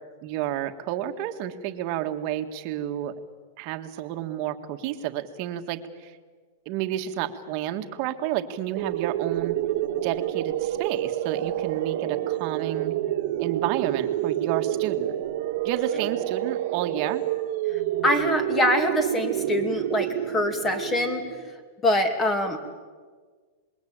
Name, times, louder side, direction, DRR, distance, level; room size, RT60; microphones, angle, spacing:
voice 1, 0.2-3.1 3.6-6.1 6.7-9.6 10.0-12.9 13.4-15.1 15.6-17.2, right 12 dB, 40° right, 6 dB, 1.8 m, -30 dB
sound 1, 8.8-21.6, right 12 dB, 55° right, 1.7 m, -28 dB
voice 2, 17.7-21.2 21.8-22.6, left 1 dB, 15° left, 8 dB, 2.7 m, -24 dB
27.0 x 21.5 x 8.9 m, 1.5 s
supercardioid pair, 160°, 0 cm